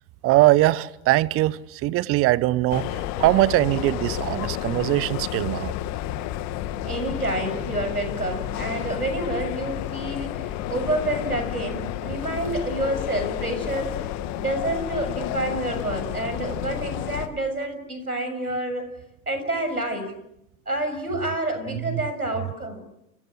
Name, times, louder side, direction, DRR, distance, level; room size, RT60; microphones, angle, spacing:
voice 1, 0.2-5.7 21.8-22.1 22.4-22.5, right 17 dB, 30° right, 1.1 m, -21 dB
sound 1, 2.7-17.3, left 12 dB, 40° left, 2.2 m, -31 dB
voice 2, 6.8-14.0 14.3-18.9 19.3-20.2 20.7-22.8, right 1 dB, 90° right, 6.8 m, -28 dB
30.0 x 30.0 x 6.5 m
figure-of-eight pair, 95°, 44 cm